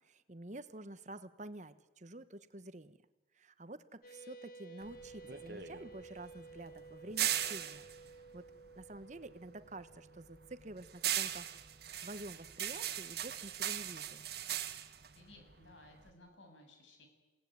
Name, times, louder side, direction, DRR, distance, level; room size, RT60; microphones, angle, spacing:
voice 1, 0.0-3.0 3.3-7.9 8.3-8.5 8.7-11.5 12.0-14.2, right 1 dB, 40° right, 13 dB, 1.2 m, -49 dB
sound 1, 4.0-12.1, right 4 dB, 50° left, 4.0 m, -55 dB
sound 2, 4.8-9.3 9.7-16.1, right 11 dB, 60° right, 1.7 m, -39 dB
voice 2, 15.1-17.1, left 2 dB, 90° left, 4 dB, 7.6 m, -59 dB
29.0 x 18.5 x 9.5 m, 1.1 s
head